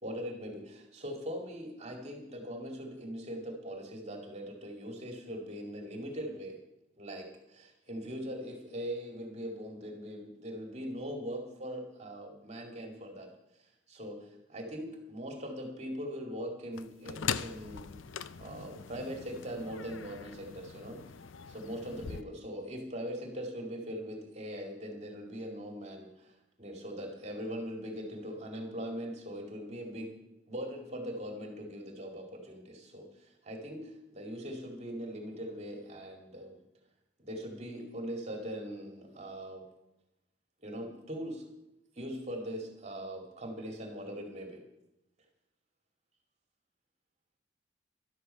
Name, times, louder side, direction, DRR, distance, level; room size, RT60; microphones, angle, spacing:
voice 1, 0.0-6.6 7.0-13.3 13.9-17.9 18.4-21.0 21.5-30.1 30.5-36.6 37.2-39.6 40.6-41.5 42.0-44.6, equal, 35° right, 2 dB, 2.3 m, -41 dB
sound 1, 16.8-22.2, left 7 dB, 90° left, 0.6 m, -41 dB
13.0 x 12.5 x 5.7 m, 0.90 s
head